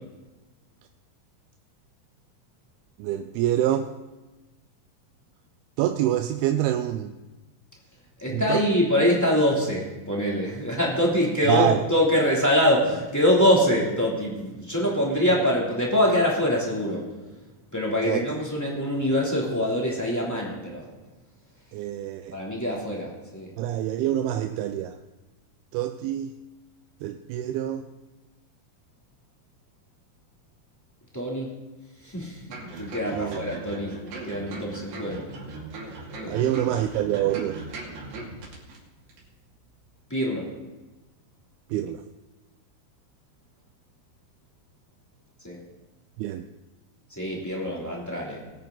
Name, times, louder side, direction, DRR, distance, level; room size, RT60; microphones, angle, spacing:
voice 1, 3.0-3.9 5.8-7.1 8.3-8.6 11.5-11.8 18.0-18.3 21.7-22.4 23.6-25.0 25.7-26.3 27.0-27.8 33.1-33.4 36.3-37.6 41.7-42.0 46.2-46.5, right 12 dB, 90° right, 7 dB, 2.5 m, -26 dB
voice 2, 8.2-17.0 17.7-20.9 22.3-23.5 31.1-31.5 32.0-32.4 32.8-33.9 34.3-35.2 36.1-36.5 40.1-40.5 45.4-45.6 47.2-48.4, equal, 5° left, -4 dB, 2.3 m, -24 dB
sound 1, 32.5-38.8 39.1-39.2, right 3 dB, 65° right, 4.3 m, -39 dB
21.0 x 8.7 x 3.9 m, 1.1 s
omnidirectional pair, 4.4 m